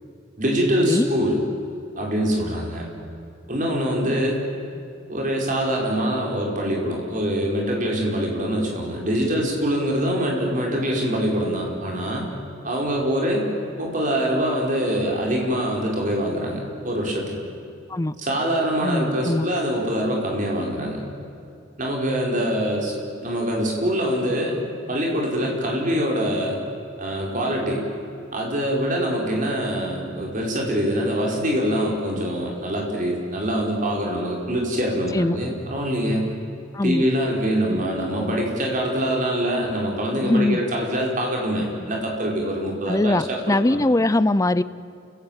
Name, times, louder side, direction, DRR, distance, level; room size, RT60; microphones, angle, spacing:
voice 1, 0.4-1.4 2.0-2.9 3.5-4.4 5.1-12.3 12.6-13.5 13.8-17.4 18.2-21.0 21.8-22.9 23.2-24.6 24.9-26.6 27.0-27.8 28.3-36.2 36.8-43.8, equal, 40° right, -1 dB, 4.9 m, -24 dB
voice 2, 18.8-19.5 35.1-35.4 36.7-37.0 40.2-40.6 42.9-44.6, left 2 dB, 15° left, 16 dB, 0.5 m, -21 dB
29.5 x 16.0 x 8.9 m, 2.6 s
head